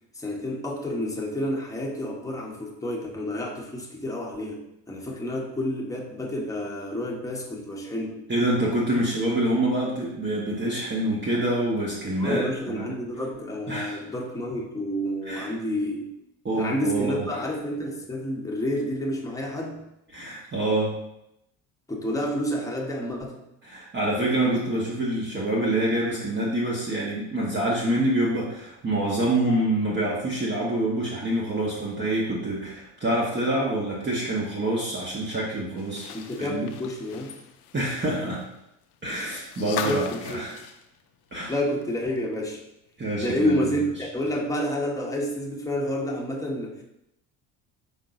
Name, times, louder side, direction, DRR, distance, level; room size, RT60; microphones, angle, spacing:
voice 1, 0.2-8.2 12.2-16.1 16.6-19.9 21.9-23.3 36.1-37.3 39.8-40.4 41.5-42.6 43.2-46.8, equal, 10° left, -1 dB, 1.1 m, -29 dB
voice 2, 8.3-12.9 13.7-14.0 15.2-15.5 16.4-17.4 20.1-20.9 23.6-36.1 36.4-36.7 37.7-38.4 39.0-40.6 41.3-41.5 43.0-43.6, right 1 dB, 25° right, -5 dB, 1.1 m, -26 dB
sound 1, 35.8-41.8 42.2-42.3 43.6-43.7, left 8 dB, 85° left, 0.6 m, -39 dB
5.4 x 3.8 x 2.6 m, 0.85 s
hypercardioid pair, 70°, 43 cm